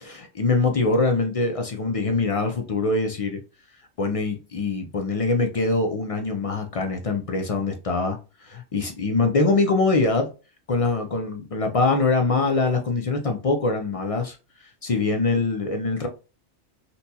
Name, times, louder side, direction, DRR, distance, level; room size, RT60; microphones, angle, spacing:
voice 1, 0.0-3.4 4.0-10.3 10.7-14.4 14.8-16.1, left 3 dB, 55° left, 0.3 m, -23 dB
4.0 x 2.2 x 2.7 m
omnidirectional pair, 1.2 m